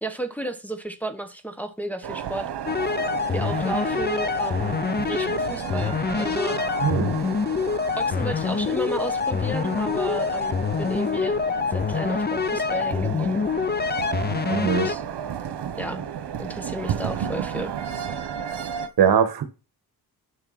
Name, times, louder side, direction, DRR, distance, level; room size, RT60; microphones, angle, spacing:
voice 1, 0.0-2.5 3.3-6.6 8.0-11.4 11.7-13.4 14.5-15.0 15.8-16.0 16.4-17.7 18.1-18.2, right 1 dB, 5° left, 1.2 m, -33 dB
sound 1, 2.0-18.9, right 9 dB, 85° right, 1.3 m, -32 dB
sound 2, 2.7-14.9, left 6 dB, 25° left, 0.5 m, -26 dB
voice 2, 6.8-7.1 14.5-14.9 18.4-18.6 19.0-19.4, right 8 dB, 65° right, 1.7 m, -21 dB
10.5 x 5.9 x 4.3 m
cardioid pair, 120°, 39 cm